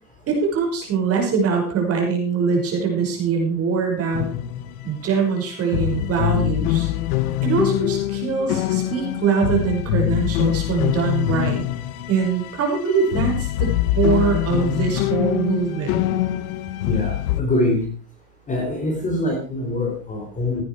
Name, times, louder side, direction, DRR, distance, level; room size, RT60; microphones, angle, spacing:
voice 1, 0.3-4.3 4.8-6.9 7.4-11.7 12.1-16.0, right 5 dB, 30° right, 2 dB, 5.6 m, -23 dB
sound 1, 4.1-5.1 5.4-5.5 5.6-17.4, left 14 dB, 65° left, 1.2 m, -24 dB
voice 2, 16.8-17.9 18.5-20.6, left 1 dB, 15° left, 2 dB, 3.4 m, -24 dB
16.0 x 9.6 x 4.7 m, 0.39 s
supercardioid pair, 145°, 47 cm